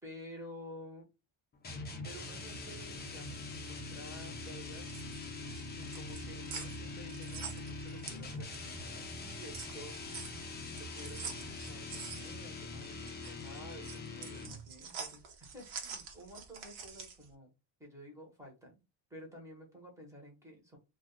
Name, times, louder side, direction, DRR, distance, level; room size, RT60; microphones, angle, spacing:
voice 1, 0.0-1.1 2.0-4.9 5.4-10.4 10.7-15.3 15.5-17.5 17.8-18.8 19.1-20.8, equal, 5° right, -1 dB, 1.0 m, -52 dB
sound 1, 1.6-14.7, left 3 dB, 20° left, 0.4 m, -43 dB
sound 2, 4.8-8.8 9.2-17.3, right 6 dB, 90° right, 0.9 m, -46 dB
2.4 x 2.3 x 3.7 m, 0.28 s
cardioid pair, 180°, 47 cm